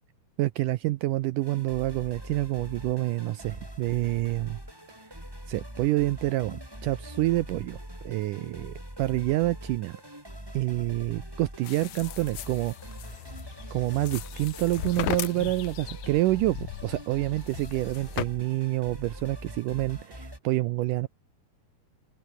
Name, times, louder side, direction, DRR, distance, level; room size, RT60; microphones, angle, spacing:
voice 1, 0.4-4.6 5.5-7.8 8.0-10.0 10.5-12.7 13.7-21.1, right 17 dB, 80° right, 1.8 m, -28 dB
sound 1, 1.4-20.4, equal, 5° right, 7.2 m, -43 dB
sound 2, 11.6-18.3, left 14 dB, 75° left, 1.7 m, -38 dB
omnidirectional pair, 4.5 m